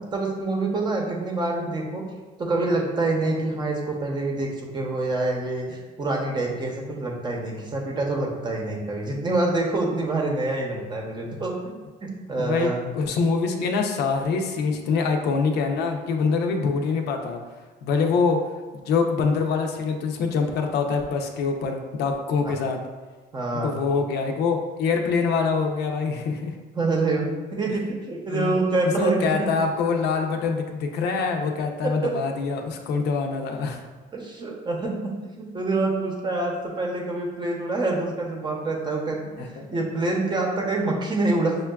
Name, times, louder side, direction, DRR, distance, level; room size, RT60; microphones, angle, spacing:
voice 1, 0.0-2.0 2.4-11.5 12.0-12.9 22.4-22.6 23.3-23.8 26.8-29.5 31.8-32.1 34.1-35.1 35.4-41.6, right 2 dB, 25° right, -1 dB, 0.8 m, -26 dB
voice 2, 12.4-17.4 17.8-18.4 18.9-22.8 23.6-26.5 27.7-27.8 28.3-28.6 29.0-33.8 39.4-39.7, left 5 dB, 75° left, 3 dB, 0.5 m, -25 dB
6.4 x 2.2 x 2.3 m, 1.3 s
cardioid pair, 110°, 17 cm